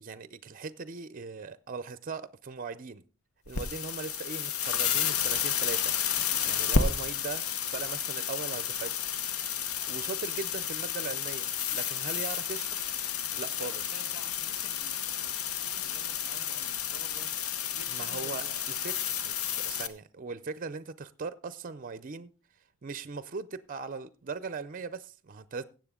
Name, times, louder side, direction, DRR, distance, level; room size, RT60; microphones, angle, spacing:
voice 1, 0.0-3.0 3.5-5.9 6.5-9.0 9.9-12.9 13.4-13.8 17.9-19.0 19.2-22.3 22.8-25.6, right 4 dB, 40° right, 0.5 m, -39 dB
sound 1, 3.5-19.9, left 7 dB, 90° left, 0.9 m, -31 dB
voice 2, 6.3-6.6 13.3-18.6 19.5-19.6, left 2 dB, 75° left, 2.1 m, -51 dB
16.5 x 7.5 x 3.7 m
head